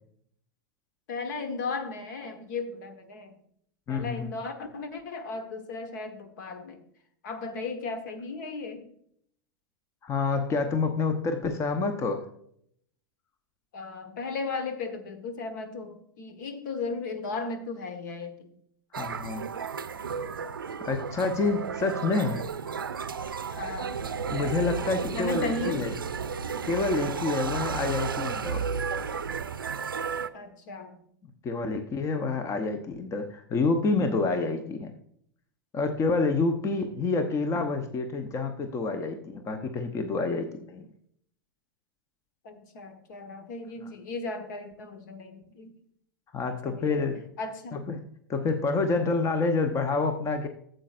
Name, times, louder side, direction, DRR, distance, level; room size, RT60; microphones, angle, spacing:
voice 1, 1.1-3.4 3.9-6.8 7.2-8.9 13.7-18.5 23.6-23.9 25.1-25.9 30.3-31.0 42.4-45.8 46.6-47.1 47.4-47.8, left 3 dB, 60° left, 8 dB, 1.4 m, -36 dB
voice 2, 3.9-4.3 10.0-12.2 19.0-19.5 20.8-22.4 24.3-25.9 26.7-28.7 31.4-34.9 35.7-40.9 46.3-47.2 47.7-48.0 48.3-50.5, left 3 dB, 25° left, 7 dB, 0.9 m, -28 dB
sound 1, 18.9-30.3, right 6 dB, 80° right, 0.5 m, -33 dB
14.0 x 7.7 x 2.5 m, 0.68 s
figure-of-eight pair, 90°, 11 cm